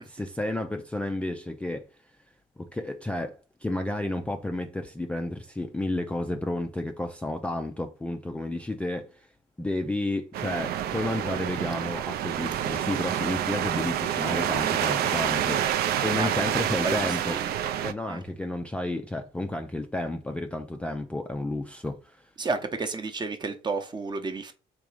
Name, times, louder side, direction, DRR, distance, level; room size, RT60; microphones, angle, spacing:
voice 1, 0.0-1.9 2.6-9.3 9.6-17.4 17.8-22.3, left 1 dB, 5° left, 0.4 m, -32 dB
sound 1, 10.3-17.9, right 10 dB, 65° right, 0.5 m, -28 dB
voice 2, 16.2-17.6 18.1-18.2 22.4-24.5, right 3 dB, 25° right, 0.8 m, -32 dB
3.6 x 3.0 x 4.8 m
cardioid pair, 110°, 17 cm